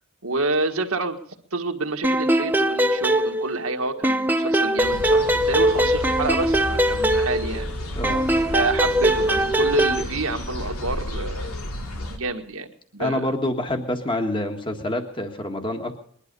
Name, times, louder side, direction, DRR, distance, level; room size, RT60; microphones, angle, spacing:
voice 1, 0.2-1.2 1.5-7.7 8.5-11.5 12.1-12.7 12.9-13.3, right 2 dB, 75° right, 4 dB, 1.7 m, -28 dB
sound 1, 2.0-3.7 4.0-7.7 8.0-10.0, right 1 dB, 10° right, 0.6 m, -21 dB
sound 2, 4.8-12.2, left 1 dB, 80° left, 2.6 m, -32 dB
voice 2, 7.9-8.3 13.0-16.0, left 1 dB, 20° left, 5 dB, 1.7 m, -27 dB
21.0 x 12.0 x 5.4 m, 0.63 s
head